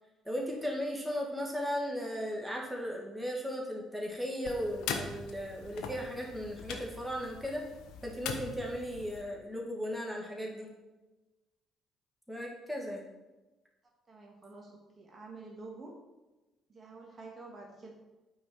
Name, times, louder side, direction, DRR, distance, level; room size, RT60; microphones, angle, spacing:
voice 1, 0.3-7.6 8.0-10.7 12.3-13.0, equal, 5° right, -1 dB, 1.8 m, -36 dB
sound 1, 4.4-9.2, left 5 dB, 65° left, 0.8 m, -41 dB
voice 2, 14.1-15.9 16.7-17.9, right 3 dB, 35° right, 0 dB, 1.5 m, -48 dB
8.7 x 4.0 x 4.4 m, 1.1 s
figure-of-eight pair, 50°, 0 cm